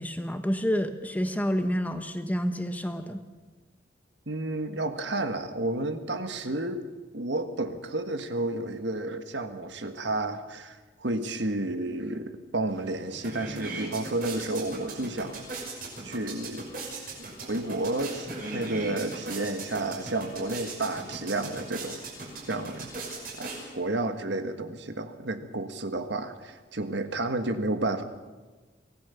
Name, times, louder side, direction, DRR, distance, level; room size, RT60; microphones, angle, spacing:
voice 1, 0.0-3.2, equal, 10° left, 8 dB, 1.1 m, -29 dB
voice 2, 4.3-6.9 7.1-15.4 16.0-16.7 17.4-22.0 22.5-22.9 23.4-28.0, right 2 dB, 75° right, 8 dB, 1.6 m, -31 dB
sound 1, 12.7-12.8 13.1-24.0, right 3 dB, 50° right, 5.9 m, -38 dB
24.5 x 17.5 x 7.0 m, 1.3 s
head